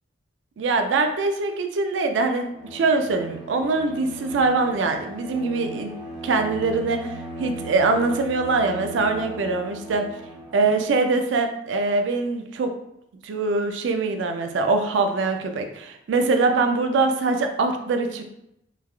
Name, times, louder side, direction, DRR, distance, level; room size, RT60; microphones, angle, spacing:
voice 1, 0.6-5.9 6.2-10.0 10.5-12.7 13.2-18.2, right 3 dB, 85° right, 6 dB, 0.4 m, -23 dB
Bowed string instrument, 2.5-11.0, right 2 dB, 30° right, 0.7 m, -38 dB
3.2 x 2.2 x 2.3 m, 0.80 s
head